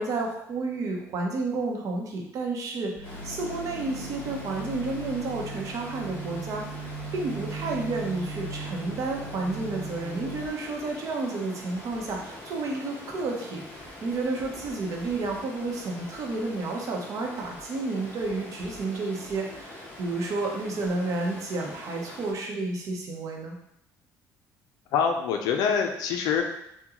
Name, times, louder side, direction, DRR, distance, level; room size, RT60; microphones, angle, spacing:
voice 1, 0.0-23.6, right 3 dB, 55° right, 0 dB, 0.7 m, -31 dB
sound 1, 2.9-10.5, right 3 dB, 80° right, 1.2 m, -38 dB
Stream, 3.0-22.3, left 1 dB, 30° left, 0.9 m, -44 dB
voice 2, 24.9-26.4, left 7 dB, 80° left, 3 dB, 0.4 m, -25 dB
3.7 x 2.2 x 2.9 m, 0.77 s
cardioid pair, 115°, 7 cm